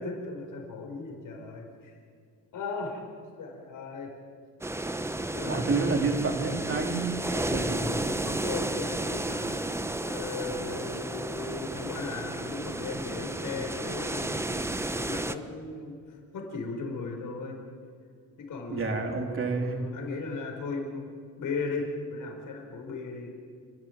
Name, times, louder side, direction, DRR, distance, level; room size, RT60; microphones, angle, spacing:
voice 1, 0.0-1.9 2.5-3.0 3.4-4.1 5.3-5.7 7.2-17.6 18.4-21.1 21.4-23.3, left 3 dB, 65° left, 1 dB, 5.3 m, -37 dB
sound 1, 4.6-15.4, right 2 dB, 10° right, 0.8 m, -32 dB
voice 2, 5.4-7.1 7.5-7.9 18.7-19.8, right 4 dB, 40° right, 3 dB, 3.2 m, -29 dB
28.5 x 12.5 x 9.6 m, 2.1 s
cardioid pair, 120°, 34 cm